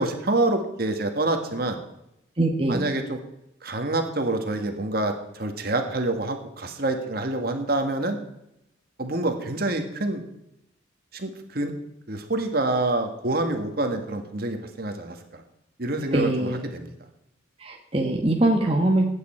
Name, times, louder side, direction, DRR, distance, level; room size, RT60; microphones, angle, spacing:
voice 1, 0.0-1.8 2.7-3.2 3.6-8.2 9.0-10.2 11.1-11.7 12.1-15.4 15.8-16.9, right 2 dB, 50° right, 5 dB, 1.6 m, -27 dB
voice 2, 2.4-2.8 16.1-16.6 17.6-19.0, right 1 dB, 30° right, 1 dB, 1.2 m, -22 dB
16.0 x 8.8 x 4.4 m, 0.83 s
head